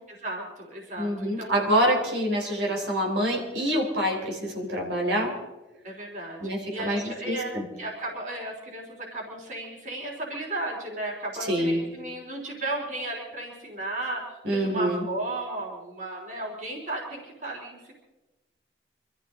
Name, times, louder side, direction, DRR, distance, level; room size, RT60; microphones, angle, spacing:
voice 1, 0.1-1.6 5.8-14.2 14.5-17.9, right 2 dB, 45° right, -1 dB, 3.5 m, -35 dB
voice 2, 1.0-5.3 6.4-7.7 11.5-11.8 14.4-15.0, equal, 85° right, 0 dB, 4.1 m, -26 dB
25.5 x 14.0 x 3.8 m, 1.1 s
head